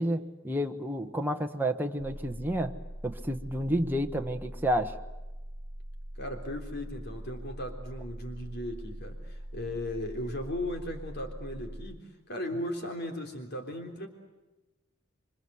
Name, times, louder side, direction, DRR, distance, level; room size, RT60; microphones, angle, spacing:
voice 1, 0.0-2.8 3.0-5.0, equal, 10° right, 3 dB, 1.3 m, -30 dB
sound 1, 2.0-12.0, equal, 45° right, 2.3 m, -42 dB
voice 2, 6.2-12.0 12.3-14.1, left 1 dB, 55° left, 4 dB, 3.6 m, -37 dB
28.0 x 24.5 x 8.0 m, 1.1 s
head